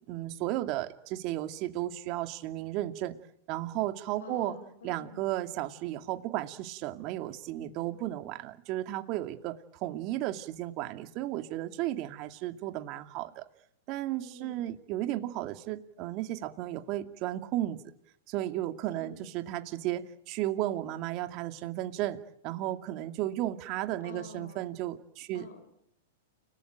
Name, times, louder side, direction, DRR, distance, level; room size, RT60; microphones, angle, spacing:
voice 1, 0.1-3.2 3.5-4.5 4.8-13.4 13.9-17.8 18.3-22.2 22.4-25.4, right 14 dB, 45° right, 7 dB, 2.4 m, -34 dB
voice 2, 4.2-5.2 14.1-14.6 18.9-19.3 24.0-24.8 25.3-25.7, left 3 dB, 80° left, 8 dB, 5.7 m, -47 dB
30.0 x 19.5 x 9.1 m, 0.76 s
hypercardioid pair, 115°, 0 cm